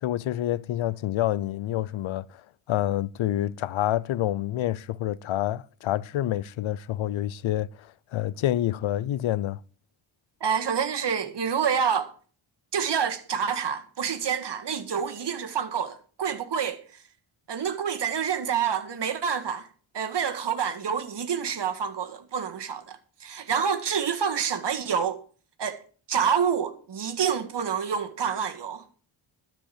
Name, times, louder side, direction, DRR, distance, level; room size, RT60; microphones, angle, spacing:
voice 1, 0.0-2.4 2.7-9.6, left 13 dB, 75° left, 0.6 m, -28 dB
voice 2, 10.4-12.1 12.7-17.0 17.5-19.7 19.9-25.2 25.6-25.8 26.1-28.8, right 7 dB, 60° right, 1.8 m, -28 dB
13.0 x 5.2 x 8.5 m
wide cardioid pair, 115°, 47 cm